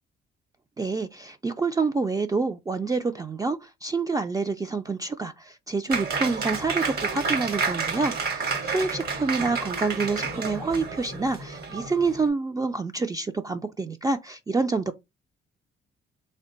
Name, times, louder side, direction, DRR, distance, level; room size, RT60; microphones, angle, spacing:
voice 1, 0.8-15.0, right 4 dB, 20° right, 0.3 m, -27 dB
Applause, 5.9-12.3, right 4 dB, 55° right, 1.1 m, -30 dB
3.3 x 2.2 x 3.7 m
cardioid pair, 90°, 20 cm